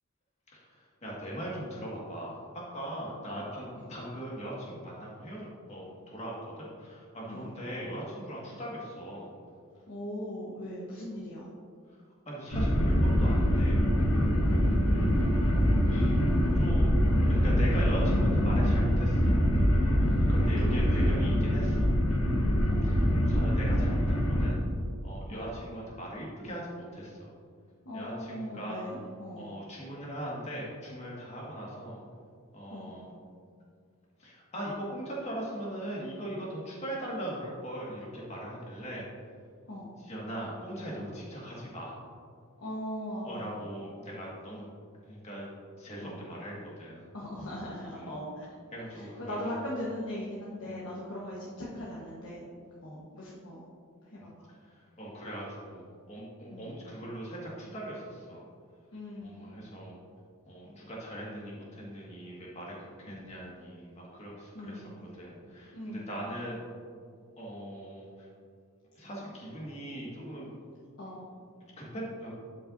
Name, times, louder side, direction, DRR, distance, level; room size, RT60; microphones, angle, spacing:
voice 1, 0.5-9.3 12.3-13.8 14.6-15.2 15.8-16.2 16.5-17.0 17.3-19.3 20.3-21.8 22.5-24.6 25.0-27.3 27.9-28.8 29.4-32.0 32.5-33.1 34.2-39.0 40.0-41.9 43.3-44.7 45.0-45.5 45.8-47.0 47.9-48.1 48.7-49.5 50.6-50.9 54.6-55.8 56.1-58.4 59.2-60.0 60.5-64.8 65.1-66.6 67.4-68.3 69.0-70.5 71.8-72.3, equal, 30° left, -5 dB, 1.8 m, -40 dB
voice 2, 9.9-11.5 14.4-14.7 20.0-21.0 22.7-23.0 25.3-25.5 27.8-29.6 32.7-33.1 39.7-39.9 42.6-43.6 46.0-46.3 47.1-48.4 48.9-52.5 52.8-53.7 54.0-54.5 56.5-56.8 58.9-59.6 63.1-63.4 64.5-65.0 65.7-66.2 71.0-71.3, left 1 dB, 60° left, -6 dB, 1.2 m, -40 dB
sound 1, 12.5-24.5, equal, 80° left, 1.2 m, -24 dB
12.0 x 5.7 x 2.7 m, 2.3 s
head